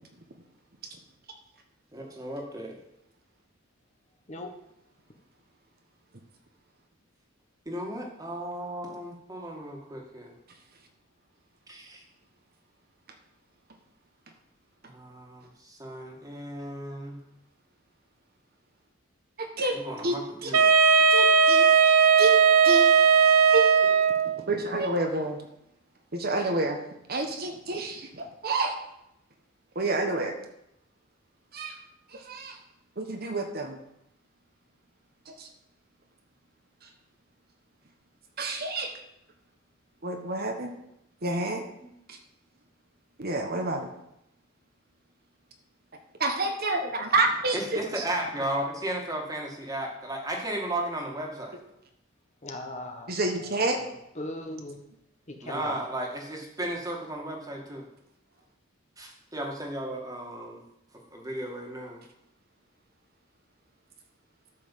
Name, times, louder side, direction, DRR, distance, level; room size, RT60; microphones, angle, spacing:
voice 1, 1.9-2.7 7.7-10.3 11.7-12.0 14.9-17.2 19.7-20.7 41.8-41.9 47.5-51.6 55.4-57.9 59.0-60.6 61.1-62.0, right 1 dB, 15° right, 0 dB, 2.1 m, -35 dB
voice 2, 19.4-19.8 20.0-20.5 21.1-22.3 22.6-23.0 23.5-24.0 24.5-25.4 26.1-26.8 27.1-28.7 29.7-30.3 31.5-31.8 32.1-32.6 33.0-33.8 35.4-35.5 38.4-38.9 40.0-40.7 41.2-41.6 42.1-42.2 43.2-43.9 46.2-48.0 53.1-53.8, right 2 dB, 45° right, 4 dB, 1.2 m, -29 dB
Wind instrument woodwind instrument, 20.5-24.4, right 6 dB, 80° right, 0.7 m, -18 dB
voice 3, 52.4-53.2 54.2-54.8 55.3-55.8, left 1 dB, 35° left, 3 dB, 1.3 m, -38 dB
12.5 x 5.8 x 7.5 m, 0.82 s
head